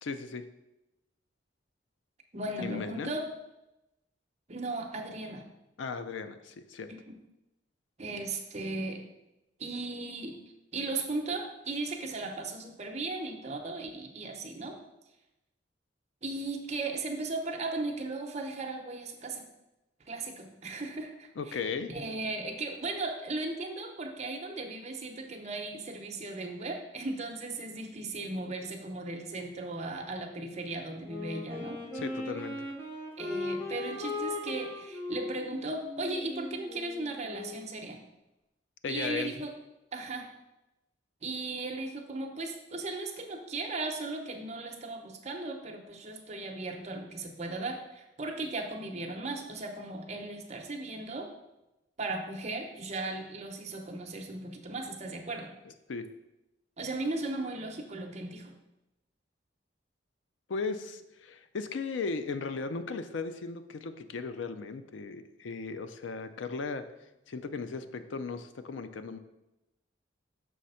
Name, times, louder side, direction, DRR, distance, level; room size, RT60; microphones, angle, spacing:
voice 1, 0.0-0.5 2.6-3.1 5.8-6.9 21.4-21.9 31.9-32.6 38.8-39.3 55.9-56.1 60.5-66.9 67.3-69.2, left 4 dB, 85° left, 10 dB, 0.5 m, -36 dB
voice 2, 2.3-3.2 4.5-5.5 6.9-7.1 8.0-9.0 9.6-10.4 10.7-14.8 16.2-19.4 20.1-21.6 21.9-31.8 33.2-38.0 38.9-39.5 39.9-40.3 41.2-51.3 52.0-55.5 56.8-58.5, right 2 dB, 35° right, 3 dB, 0.8 m, -37 dB
Wind instrument woodwind instrument, 31.0-37.7, left 2 dB, 10° left, 1.5 m, -38 dB
6.3 x 3.3 x 5.6 m, 0.95 s
head